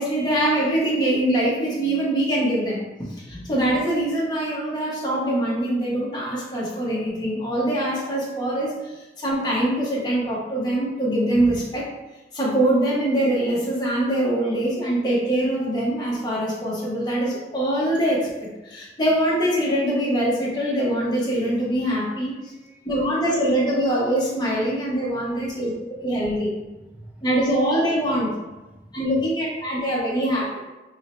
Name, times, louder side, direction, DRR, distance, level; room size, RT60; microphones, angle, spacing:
voice 1, 0.0-2.8 3.2-11.9 12.3-22.3 22.8-26.5 27.2-28.3 28.9-30.6, right 1 dB, 25° left, -5 dB, 0.9 m, -23 dB
voice 2, 22.1-22.9 25.2-25.6 26.2-26.3 26.9-27.3 28.0-28.2 28.5-29.1, right 1 dB, 10° right, -1 dB, 0.4 m, -49 dB
3.2 x 2.7 x 4.1 m, 1.1 s
head